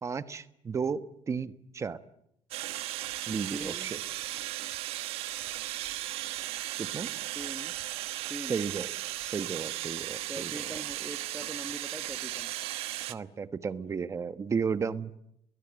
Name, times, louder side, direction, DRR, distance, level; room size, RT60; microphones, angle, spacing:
voice 1, 0.0-1.0 1.3-2.0 3.3-4.0 6.8-7.1 8.5-8.9 9.3-10.5 13.1-15.3, right 6 dB, 30° right, 12 dB, 1.3 m, -33 dB
sound 1, 2.5-13.1, right 16 dB, 75° right, 1.2 m, -36 dB
voice 2, 3.5-3.9 7.3-7.7 8.3-8.6 10.3-12.5, right 1 dB, 5° right, 6 dB, 1.6 m, -42 dB
29.5 x 21.0 x 9.0 m, 0.78 s
cardioid pair, 110°, 10 cm